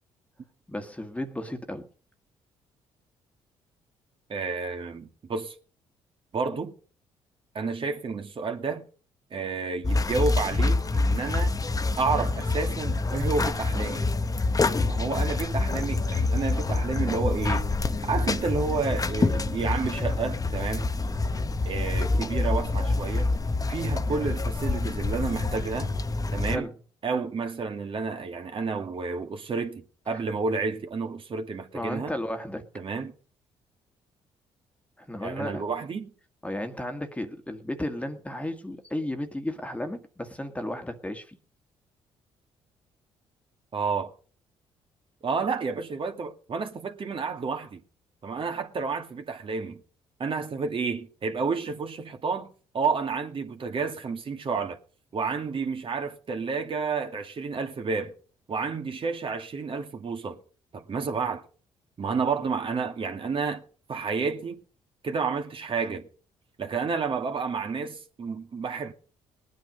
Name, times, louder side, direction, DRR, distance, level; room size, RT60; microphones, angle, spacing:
voice 1, 0.7-1.9 26.5-26.7 30.1-30.2 31.7-32.7 35.0-35.6 36.4-41.4, left 1 dB, 10° left, 1.9 m, -34 dB
voice 2, 4.3-5.5 6.3-6.7 7.5-8.8 9.3-11.6 12.0-14.1 14.8-17.7 18.0-20.9 21.7-23.3 23.7-25.9 26.3-26.7 27.0-32.1 32.7-33.1 35.2-36.1 43.7-44.1 45.2-47.8 48.2-49.8 50.2-54.8 55.1-58.1 58.5-60.4 60.7-61.4 62.0-63.6 63.9-64.6 65.0-66.1 66.6-68.9, right 4 dB, 45° right, 2.3 m, -30 dB
sound 1, 9.8-26.6, left 3 dB, 30° left, 1.2 m, -26 dB
19.5 x 9.3 x 5.3 m
supercardioid pair, 60°, 12 cm